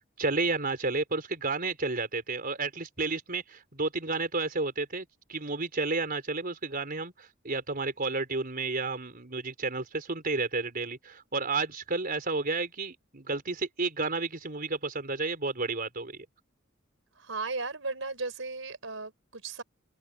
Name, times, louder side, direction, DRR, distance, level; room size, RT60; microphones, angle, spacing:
voice 1, 0.2-16.1, right 3 dB, 45° right, 4.4 m, -31 dB
voice 2, 17.2-19.6, right 3 dB, 70° right, 5.5 m, -36 dB
head